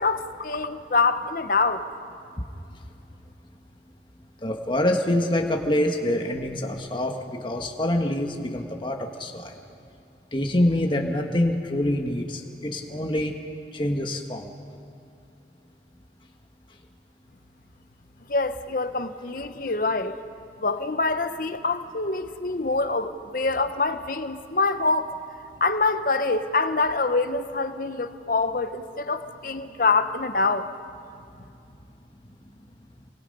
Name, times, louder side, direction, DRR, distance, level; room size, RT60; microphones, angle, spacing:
voice 1, 0.0-1.8 18.3-20.1 20.6-25.1 25.6-30.7, left 3 dB, 50° left, 0.9 m, -25 dB
voice 2, 4.4-9.5 10.3-13.3 13.7-14.5, left 1 dB, 25° left, 1.4 m, -25 dB
29.0 x 24.0 x 5.4 m
head